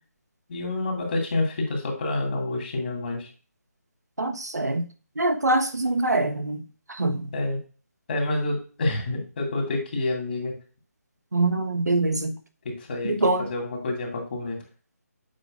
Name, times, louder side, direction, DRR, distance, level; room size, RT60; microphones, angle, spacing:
voice 1, 0.5-3.3 7.3-7.6 8.1-10.5 12.6-14.6, left 2 dB, 40° left, 2.2 m, -28 dB
voice 2, 4.2-4.9 5.2-6.6 6.9-7.3 11.3-12.4 13.0-13.4, right 2 dB, 90° right, 1.1 m, -24 dB
7.7 x 5.1 x 2.5 m
figure-of-eight pair, 155°, 9 cm